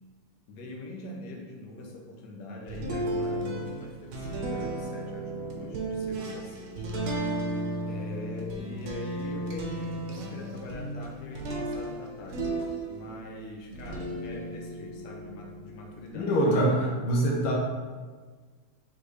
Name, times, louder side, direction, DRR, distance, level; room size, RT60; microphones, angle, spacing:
voice 1, 0.5-7.2 7.9-12.5 12.9-16.3, left 2 dB, 65° left, -1 dB, 1.0 m, -43 dB
sound 1, 2.7-13.3 13.7-16.1, right 1 dB, 80° right, 1.5 m, -34 dB
voice 2, 16.1-17.5, right 1 dB, 90° left, -3 dB, 1.6 m, -24 dB
3.9 x 3.4 x 3.2 m, 1.4 s
omnidirectional pair, 2.3 m